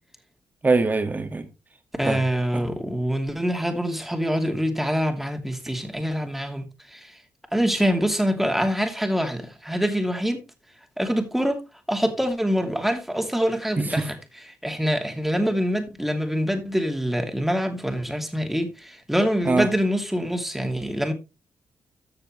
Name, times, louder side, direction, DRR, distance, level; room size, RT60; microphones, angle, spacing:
voice 1, 0.6-1.5 2.1-2.2 2.5-2.6 13.8-14.1 19.4-19.7, right 3 dB, 30° right, 1.9 m, -23 dB
voice 2, 2.0-7.2 7.5-10.5 11.0-11.6 11.9-14.2 14.6-21.1, equal, 5° right, 2.7 m, -25 dB
13.5 x 6.8 x 3.2 m
cardioid pair, 65°, 6 cm